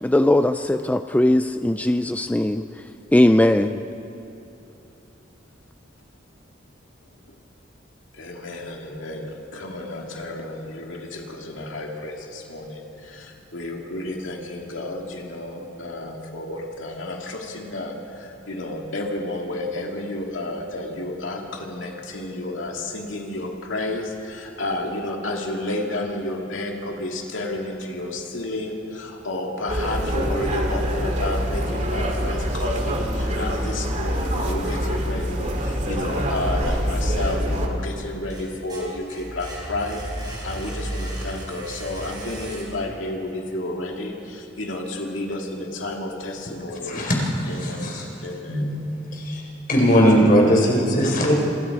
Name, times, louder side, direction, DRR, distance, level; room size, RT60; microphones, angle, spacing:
voice 1, 0.0-2.6 3.1-3.8, left 1 dB, 10° left, 0.4 m, -19 dB
voice 2, 8.1-47.2 47.5-47.9 48.2-48.7, left 1 dB, 85° left, 2.2 m, -31 dB
sound 1, 29.7-37.7, equal, 40° right, 2.3 m, -25 dB
sound 2, 36.8-37.6 38.0-43.1, right 1 dB, 20° right, 4.9 m, -35 dB
voice 3, 47.6-48.0 48.5-48.6 49.2-49.4 49.7-51.3, equal, 50° left, 4.7 m, -18 dB
27.5 x 21.5 x 4.8 m
head